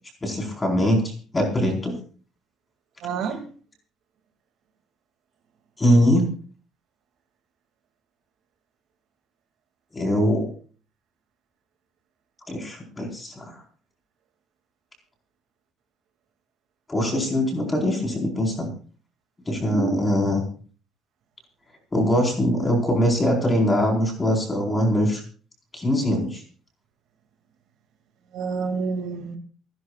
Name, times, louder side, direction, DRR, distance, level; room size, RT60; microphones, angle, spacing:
voice 1, 0.2-1.9 5.8-6.2 9.9-10.5 12.5-13.5 16.9-18.7 19.5-20.4 21.9-25.2 25.7-26.4, equal, 15° left, 1 dB, 4.4 m, -22 dB
voice 2, 3.0-3.4 19.6-20.1 28.3-29.4, right 4 dB, 60° right, 5 dB, 2.3 m, -28 dB
28.0 x 11.0 x 2.4 m, 0.41 s
cardioid pair, 175°, 0 cm